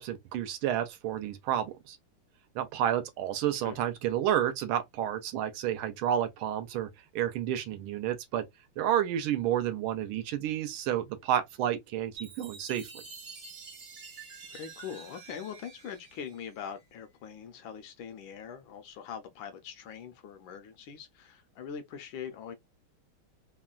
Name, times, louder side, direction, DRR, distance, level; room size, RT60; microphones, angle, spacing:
voice 1, 0.0-2.0 2.5-6.9 7.1-8.5 8.8-13.0, right 10 dB, 80° right, 1.4 m, -30 dB
Chime, 12.2-16.8, right 4 dB, 45° right, 0.9 m, -48 dB
voice 2, 14.5-22.6, left 7 dB, 75° left, 1.3 m, -42 dB
3.6 x 2.2 x 2.3 m
omnidirectional pair, 2.4 m